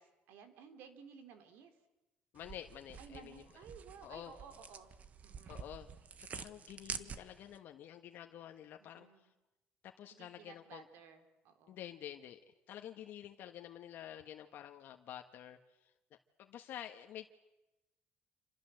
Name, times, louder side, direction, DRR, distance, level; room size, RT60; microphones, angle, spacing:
voice 1, 0.0-1.8 3.0-4.9 5.2-5.7 8.8-9.3 10.1-11.8, right 6 dB, 85° right, 8 dB, 3.7 m, -56 dB
voice 2, 2.3-3.4 4.0-4.3 5.5-5.9 6.2-9.3 9.8-10.8 11.7-12.4 12.7-15.9 16.4-17.3, left 11 dB, 65° left, 5 dB, 1.5 m, -49 dB
sound 1, 2.4-7.6, right 6 dB, 45° right, 1.5 m, -48 dB
28.0 x 26.5 x 7.8 m, 1.0 s
cardioid pair, 125°, 4 cm